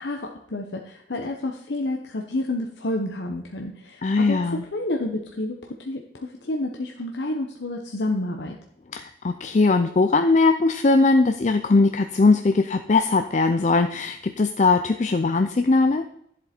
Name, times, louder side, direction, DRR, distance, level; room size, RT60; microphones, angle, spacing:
voice 1, 0.0-4.4 4.7-8.6, left 1 dB, 75° left, 2 dB, 0.9 m, -29 dB
voice 2, 4.0-4.6 8.9-16.0, left 3 dB, 40° left, 8 dB, 0.4 m, -20 dB
10.5 x 7.5 x 4.4 m, 0.72 s
head